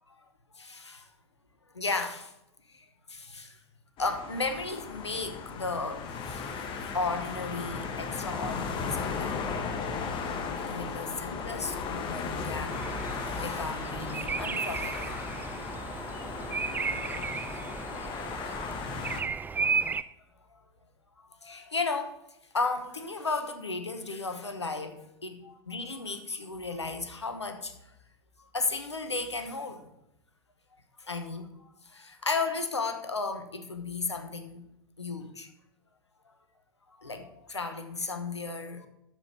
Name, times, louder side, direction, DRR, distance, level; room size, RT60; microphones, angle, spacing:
voice 1, 0.5-1.1 1.7-2.3 2.7-3.6 4.0-6.5 6.8-9.4 10.6-12.8 13.2-15.1 16.9-17.1 17.5-17.6 18.5-18.6 20.5-20.6 21.4-22.2 22.5-27.7 28.5-29.8 31.0-31.5 31.8-34.6 35.0-35.5 37.0-38.9, left 3 dB, 85° left, 7 dB, 1.1 m, -34 dB
sound 1, 4.0-19.2, left 5 dB, 35° left, 1.4 m, -36 dB
Bird vocalization bird call bird song, 12.7-20.0, right 5 dB, 15° right, 0.4 m, -34 dB
7.8 x 7.2 x 5.7 m, 0.84 s
figure-of-eight pair, 85°, 14 cm